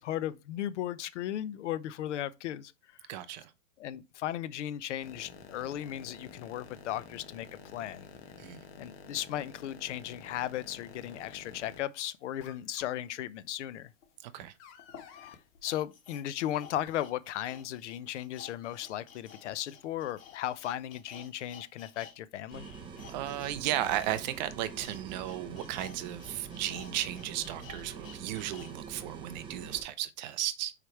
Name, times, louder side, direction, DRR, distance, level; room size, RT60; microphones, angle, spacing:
voice 1, 0.0-2.7 3.0-3.1 3.8-8.1 8.8-13.9 15.2-15.4 15.6-22.7, left 12 dB, 60° left, 0.7 m, -36 dB
voice 2, 3.1-3.5 8.4-8.6 14.2-14.5 23.1-30.7, right 12 dB, 35° right, 0.5 m, -35 dB
sound 1, 5.0-11.8 12.4-12.8 14.4-15.4 16.8-16.9 19.5-19.6, left 7 dB, 30° left, 1.2 m, -50 dB
sound 2, 14.0-14.1 14.8-22.2 22.4-28.7 29.1-29.2, left 7 dB, 75° left, 2.0 m, -52 dB
sound 3, 22.5-29.8, right 6 dB, 10° right, 0.9 m, -45 dB
4.9 x 4.9 x 4.5 m
hypercardioid pair, 140°, 40 cm